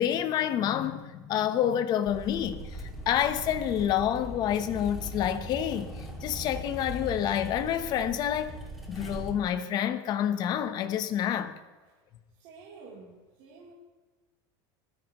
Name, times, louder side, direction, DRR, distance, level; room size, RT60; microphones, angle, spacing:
voice 1, 0.0-2.7 3.1-5.9 6.2-8.6 8.9-11.5, left 10 dB, 35° left, 0.9 m, -28 dB
sound 1, 2.0-9.3, equal, ahead, 2.3 m, -40 dB
voice 2, 12.4-13.1 13.4-13.7, right 4 dB, 50° right, 3.3 m, -49 dB
20.5 x 13.0 x 3.1 m
supercardioid pair, 155°, 12 cm